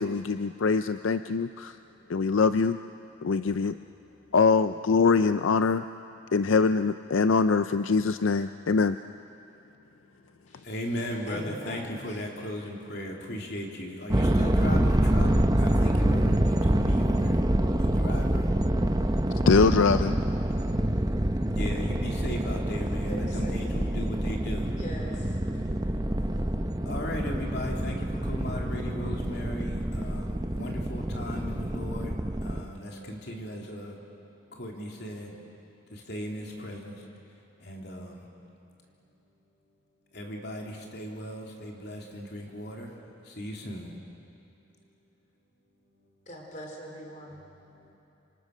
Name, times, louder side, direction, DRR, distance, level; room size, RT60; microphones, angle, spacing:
voice 1, 0.0-1.8 2.1-2.8 3.2-3.8 4.3-5.8 6.3-9.0 19.5-20.2, left 4 dB, 80° left, 11 dB, 0.5 m, -23 dB
voice 2, 10.6-15.3 15.6-17.4 17.8-18.5 21.5-24.7 26.3-26.5 26.8-34.0 34.5-35.4 35.9-37.0 37.6-38.3 40.1-42.9 43.2-43.9 47.6-48.0, left 1 dB, 55° left, 0 dB, 3.3 m, -37 dB
voice 3, 11.3-12.0 23.1-23.7 24.7-25.3 46.3-47.4, equal, 40° left, 0 dB, 4.5 m, -41 dB
sound 1, 14.1-32.6, right 1 dB, 20° right, 0.8 m, -26 dB
27.0 x 26.5 x 6.6 m, 2.9 s
head